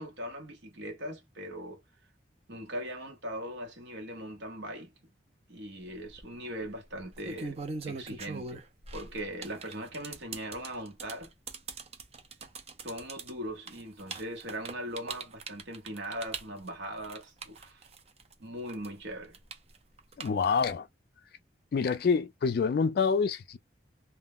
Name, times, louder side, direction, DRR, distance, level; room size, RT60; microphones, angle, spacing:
voice 1, 0.0-1.8 2.5-4.9 5.5-7.6 7.9-8.6 8.9-11.3 12.8-17.8 18.4-19.4, equal, 75° right, 0.9 m, -40 dB
sound 1, 5.9-6.2 7.0-18.3 18.7-20.7, right 4 dB, 35° right, 0.5 m, -41 dB
voice 2, 20.2-20.9 21.7-23.6, left 5 dB, 55° left, 0.3 m, -27 dB
2.2 x 2.0 x 3.5 m
head